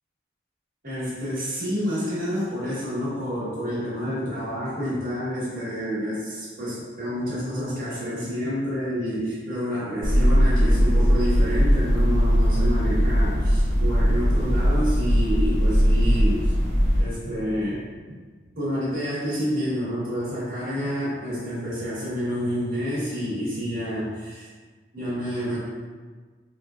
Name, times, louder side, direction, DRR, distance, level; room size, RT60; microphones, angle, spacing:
voice 1, 0.8-16.5 17.0-17.8 18.6-24.5 24.9-25.6, equal, 45° right, -10 dB, 1.5 m, -28 dB
sound 1, 10.0-17.0, equal, 70° right, 1.0 m, -20 dB
4.8 x 2.3 x 2.4 m, 1.5 s
head